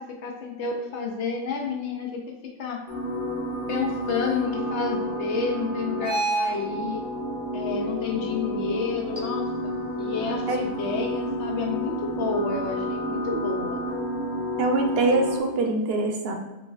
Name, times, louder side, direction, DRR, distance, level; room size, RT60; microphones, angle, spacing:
voice 1, 0.0-2.8 3.7-7.0 7.5-13.8, left 4 dB, 75° left, 1 dB, 0.9 m, -30 dB
sound 1, 2.9-15.4, equal, 45° left, 1.6 m, -30 dB
voice 2, 14.6-16.3, right 2 dB, 65° right, 3 dB, 0.7 m, -23 dB
5.9 x 2.6 x 2.3 m, 1.0 s
omnidirectional pair, 1.2 m